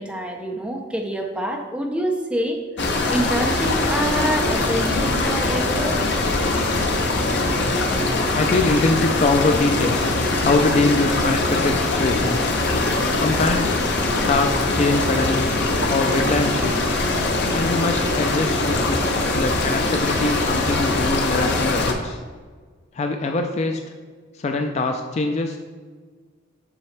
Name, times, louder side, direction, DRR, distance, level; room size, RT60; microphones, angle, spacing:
voice 1, 0.0-6.0, right 1 dB, 5° right, 1 dB, 0.6 m, -26 dB
sound 1, 2.8-21.9, left 2 dB, 55° left, 0.8 m, -22 dB
voice 2, 8.1-10.1 10.4-12.5 13.2-13.8 14.3-15.5 15.9-16.8 17.5-19.0 19.3-22.2 22.9-23.8 24.3-25.6, left 2 dB, 30° left, 5 dB, 0.3 m, -23 dB
7.2 x 6.0 x 3.2 m, 1.5 s
head